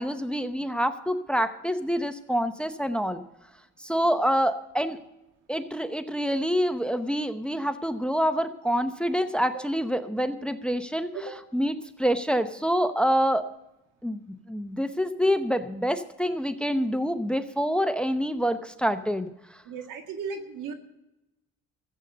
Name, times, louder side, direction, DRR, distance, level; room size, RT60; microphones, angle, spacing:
voice 1, 0.0-3.2 3.8-5.0 5.5-13.5 14.0-19.6, equal, 5° left, 11 dB, 0.7 m, -27 dB
voice 2, 19.6-20.7, right 5 dB, 85° right, 5 dB, 2.0 m, -35 dB
14.5 x 8.1 x 6.6 m, 0.93 s
cardioid pair, 90°, 30 cm